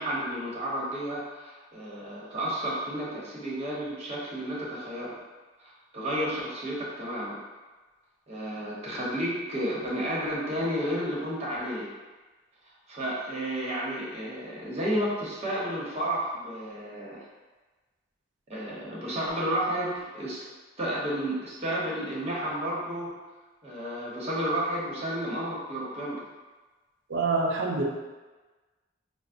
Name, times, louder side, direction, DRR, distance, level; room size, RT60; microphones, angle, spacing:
voice 1, 0.0-5.1 5.6-7.4 8.3-11.9 12.9-17.2 18.5-20.4 20.8-23.1 23.6-26.2, equal, 35° right, -6 dB, 0.9 m, -32 dB
voice 2, 27.1-27.8, right 3 dB, 75° right, -2 dB, 0.7 m, -26 dB
5.4 x 2.0 x 2.5 m, 1.3 s
head